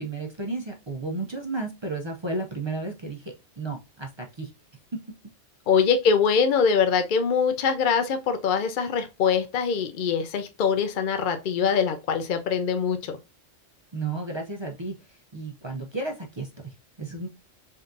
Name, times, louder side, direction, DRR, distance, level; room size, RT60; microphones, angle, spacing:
voice 1, 0.0-4.5 13.9-17.3, right 3 dB, 40° right, 0.4 m, -33 dB
voice 2, 5.7-13.2, left 6 dB, 55° left, 0.6 m, -23 dB
5.0 x 2.6 x 2.6 m
omnidirectional pair, 1.3 m